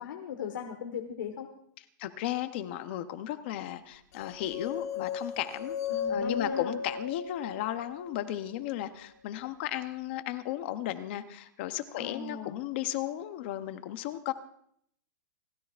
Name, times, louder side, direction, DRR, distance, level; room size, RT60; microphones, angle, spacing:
voice 1, 0.0-1.5 5.9-6.7 12.0-12.6, left 7 dB, 70° left, 4 dB, 1.3 m, -38 dB
voice 2, 2.0-5.8 6.1-14.3, left 13 dB, 35° left, 11 dB, 0.6 m, -35 dB
sound 1, 4.2-8.3, left 6 dB, 55° left, 1.7 m, -35 dB
29.5 x 13.5 x 2.4 m, 0.68 s
supercardioid pair, 180°, 11 cm